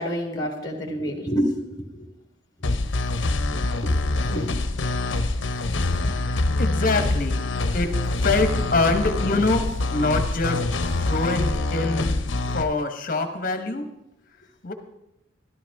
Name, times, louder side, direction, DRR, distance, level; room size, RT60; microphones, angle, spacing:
voice 1, 0.0-2.1 3.8-3.9 4.3-4.5, equal, 20° left, 2 dB, 1.8 m, -28 dB
sound 1, 2.6-12.6, left 2 dB, 75° left, 0.8 m, -25 dB
voice 2, 6.6-7.4 7.7-9.6 9.9-10.6 11.0-12.1 12.5-13.8 14.6-14.7, left 3 dB, 45° left, 7 dB, 1.2 m, -24 dB
13.5 x 12.5 x 3.6 m, 0.81 s
head